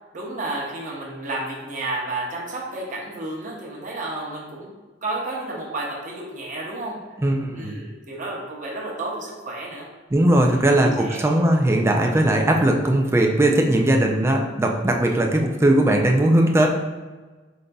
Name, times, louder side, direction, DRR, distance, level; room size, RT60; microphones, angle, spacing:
voice 1, 0.1-4.7 5.0-7.0 7.5-9.9 10.5-11.3, right 2 dB, 45° right, -3 dB, 0.9 m, -31 dB
voice 2, 7.2-7.7 10.1-16.7, right 1 dB, 15° right, 1 dB, 0.4 m, -19 dB
5.1 x 3.9 x 2.3 m, 1.3 s
head